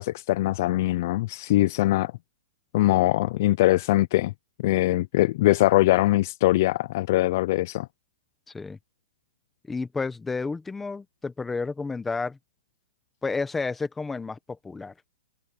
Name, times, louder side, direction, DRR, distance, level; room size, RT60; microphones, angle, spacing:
voice 1, 0.0-2.1 2.7-4.3 4.6-7.9, left 16 dB, 35° left, 0.3 m, -22 dB
voice 2, 9.7-12.4 13.2-14.9, left 4 dB, 5° left, 0.9 m, -31 dB
open air
hypercardioid pair, 175°, 3 cm